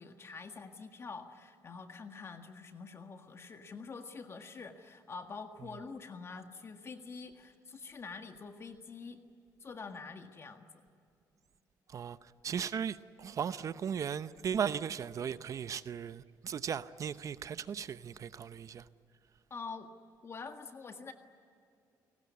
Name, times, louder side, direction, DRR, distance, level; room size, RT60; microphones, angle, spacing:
voice 1, 0.0-9.2 9.6-10.8 19.5-19.9 20.2-21.1, left 4 dB, 40° left, 1.8 m, -46 dB
voice 2, 11.9-18.9, right 7 dB, 50° right, 0.7 m, -37 dB
29.0 x 18.5 x 9.7 m
cardioid pair, 100°, 7 cm